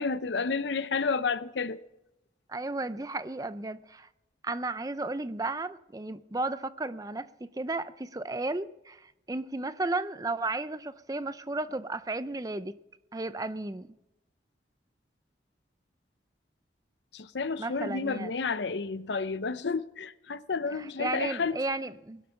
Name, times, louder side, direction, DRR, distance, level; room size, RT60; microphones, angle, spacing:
voice 1, 0.0-1.8 17.1-21.6, left 4 dB, 75° left, 0.7 m, -31 dB
voice 2, 2.5-4.1 4.4-7.3 7.6-12.7 13.1-13.9 17.6-18.3 20.8-22.2, right 2 dB, 20° right, 0.5 m, -34 dB
20.0 x 12.0 x 5.7 m
head